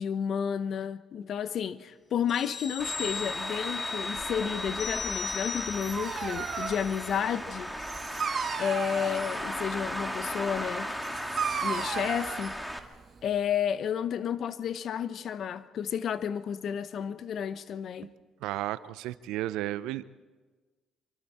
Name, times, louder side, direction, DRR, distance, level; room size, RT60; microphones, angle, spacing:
voice 1, 0.0-7.7 8.6-10.9 11.6-12.5 13.2-18.1, left 8 dB, 60° left, 13 dB, 1.0 m, -31 dB
sound 1, 2.3-7.4 7.7-7.9, left 4 dB, 35° left, 0.9 m, -37 dB
Traffic noise roadway noise, 2.8-12.8, equal, 5° left, 2.2 m, -36 dB
Dog, 5.5-13.4, right 6 dB, 50° right, 1.8 m, -36 dB
voice 2, 18.4-20.0, right 14 dB, 80° right, 16 dB, 0.6 m, -33 dB
26.5 x 24.5 x 4.3 m, 1.4 s
supercardioid pair, 65°, 0 cm